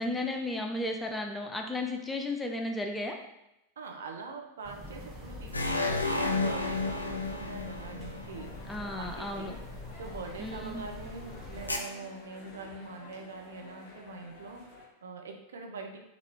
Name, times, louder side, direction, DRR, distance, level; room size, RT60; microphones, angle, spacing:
voice 1, 0.0-3.1 8.7-9.5 10.4-10.8, left 2 dB, 10° left, 2 dB, 0.4 m, -34 dB
voice 2, 3.8-8.6 8.9-9.7 9.9-16.1, right 4 dB, 65° right, 3 dB, 0.5 m, -44 dB
sound 1, 4.6-11.8, left 1 dB, 10° right, 0.9 m, -45 dB
sound 2, 5.5-9.1 11.7-11.8, left 3 dB, 80° left, 0.3 m, -31 dB
sound 3, 8.2-14.8, left 3 dB, 35° left, 1.2 m, -51 dB
3.6 x 2.3 x 3.2 m, 0.88 s
figure-of-eight pair, 90°, 0 cm